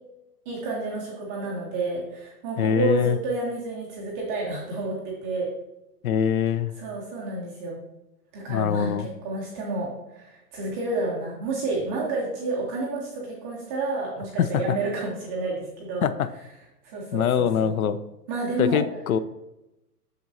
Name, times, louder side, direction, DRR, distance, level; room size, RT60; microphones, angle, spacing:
voice 1, 0.5-5.5 6.8-7.8 8.3-8.9 9.2-16.1 16.8-17.8 18.3-18.8, right 3 dB, 10° right, -4 dB, 0.4 m, -30 dB
voice 2, 2.6-3.2 6.0-6.7 8.5-9.1 14.4-14.6 16.0-16.3 17.1-18.0 18.6-19.2, left 8 dB, 60° left, 14 dB, 0.5 m, -23 dB
7.7 x 6.3 x 2.7 m, 0.94 s
hypercardioid pair, 135°, 48 cm